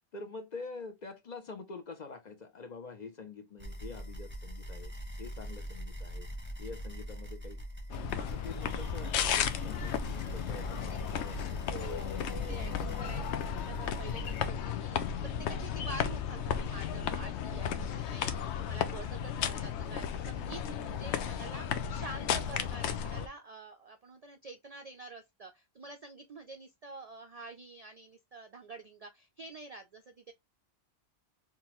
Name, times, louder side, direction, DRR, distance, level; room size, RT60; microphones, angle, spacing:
voice 1, 0.1-4.9 5.2-6.3 6.6-7.6 8.2-11.5, left 4 dB, 45° left, 0.6 m, -46 dB
sound 1, 3.6-14.5, equal, 10° right, 0.7 m, -42 dB
sound 2, 7.9-23.3, left 8 dB, 80° left, 0.9 m, -34 dB
voice 2, 11.7-30.3, right 3 dB, 55° right, 0.4 m, -48 dB
3.6 x 2.9 x 2.9 m
omnidirectional pair, 1.2 m